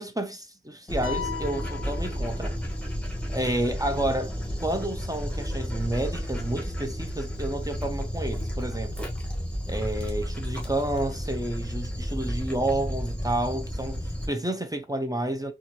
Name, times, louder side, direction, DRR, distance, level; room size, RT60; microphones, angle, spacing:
voice 1, 0.0-2.6 3.3-4.3 4.6-9.1 9.7-15.5, right 1 dB, 15° right, 0.6 m, -30 dB
Dog, 0.9-14.3, equal, 5° left, 1.5 m, -32 dB
sound 1, 1.0-2.9, left 8 dB, 75° left, 0.4 m, -38 dB
4.1 x 2.4 x 2.9 m
wide cardioid pair, 50°, 21 cm